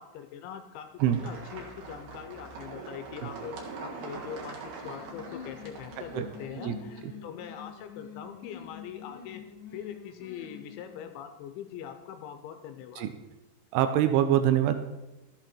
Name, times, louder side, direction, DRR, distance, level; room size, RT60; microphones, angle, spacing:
voice 1, 0.0-0.9 1.2-9.4 9.7-13.1, left 9 dB, 80° left, 8 dB, 3.0 m, -42 dB
sound 1, 1.0-6.4, right 4 dB, 60° right, 2.8 m, -43 dB
sound 2, 4.8-11.2, left 6 dB, 55° left, 2.3 m, -46 dB
voice 2, 13.7-14.8, right 11 dB, 85° right, 9 dB, 3.3 m, -24 dB
13.0 x 8.4 x 4.4 m, 1.0 s
omnidirectional pair, 5.6 m